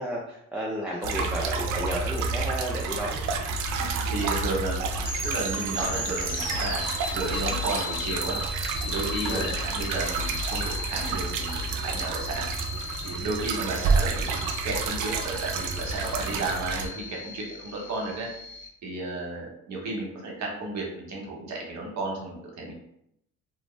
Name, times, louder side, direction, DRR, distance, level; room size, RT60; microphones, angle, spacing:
voice 1, 0.0-3.2 9.2-9.5, equal, 5° right, -5 dB, 0.4 m, -32 dB
sound 1, 1.0-16.9, right 4 dB, 80° right, 0.4 m, -30 dB
voice 2, 3.8-6.8 7.1-8.4 8.8-12.5 13.0-18.3 18.8-22.7, right 2 dB, 65° right, -1 dB, 0.9 m, -33 dB
sound 2, 5.0-18.7, left 2 dB, 40° left, 0.9 m, -36 dB
2.5 x 2.0 x 3.1 m, 0.76 s
cardioid pair, 90°, 30 cm